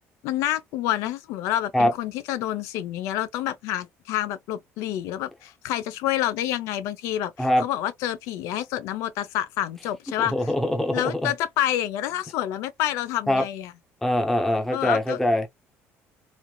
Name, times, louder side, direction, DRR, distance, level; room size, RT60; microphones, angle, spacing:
voice 1, 0.2-10.5 10.9-13.7 14.7-15.2, left 12 dB, 75° left, 0.5 m, -28 dB
voice 2, 10.3-11.3 13.3-13.4 14.0-15.5, left 1 dB, 5° left, 0.7 m, -23 dB
3.2 x 2.6 x 2.3 m
cardioid pair, 180°, 5 cm